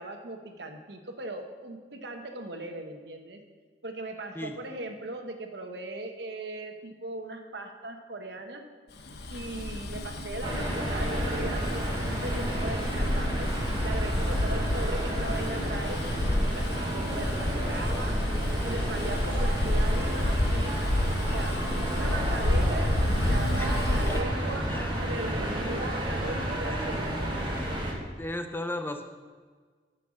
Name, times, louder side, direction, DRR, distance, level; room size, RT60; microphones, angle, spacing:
voice 1, 0.0-3.4 3.8-8.6 9.3-11.7 12.1-13.5 13.8-20.8 21.3-21.6 21.9-24.7 25.0-27.8, right 2 dB, 75° right, 4 dB, 1.2 m, -38 dB
Bus, 9.1-24.2, left 1 dB, 65° left, 1.0 m, -30 dB
sound 1, 10.4-27.9, right 1 dB, 25° right, 1.5 m, -31 dB
voice 2, 23.6-24.4 24.7-24.9 25.3-25.4 26.2-27.0 27.3-27.7 28.2-29.0, left 1 dB, 15° left, 6 dB, 0.7 m, -37 dB
11.0 x 5.7 x 6.5 m, 1.5 s
head